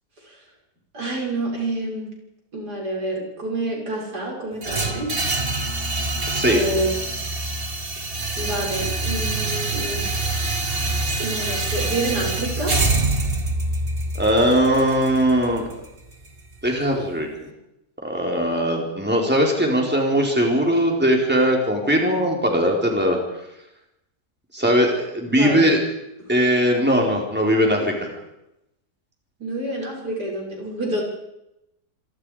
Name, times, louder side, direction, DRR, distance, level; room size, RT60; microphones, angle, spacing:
voice 1, 0.9-2.1 2.5-5.1 6.4-7.0 8.4-10.1 11.2-12.7 25.3-25.7 29.4-31.0, right 1 dB, 85° right, -1 dB, 7.3 m, -28 dB
sound 1, 4.6-16.7, right 2 dB, 35° right, 2.1 m, -25 dB
voice 2, 14.1-15.6 16.6-17.3 18.0-23.2 24.5-25.8 26.3-28.1, equal, 5° right, 0 dB, 4.5 m, -20 dB
27.0 x 23.5 x 5.1 m, 0.86 s
omnidirectional pair, 1.7 m